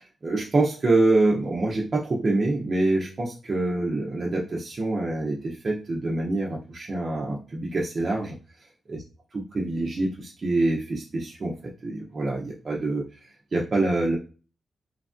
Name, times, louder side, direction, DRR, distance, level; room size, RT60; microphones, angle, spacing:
voice 1, 0.2-8.3 8.9-9.0 9.3-13.0 13.5-14.2, right 2 dB, 45° right, -3 dB, 0.6 m, -25 dB
3.3 x 2.2 x 2.5 m, 0.35 s
cardioid pair, 75°, 0 cm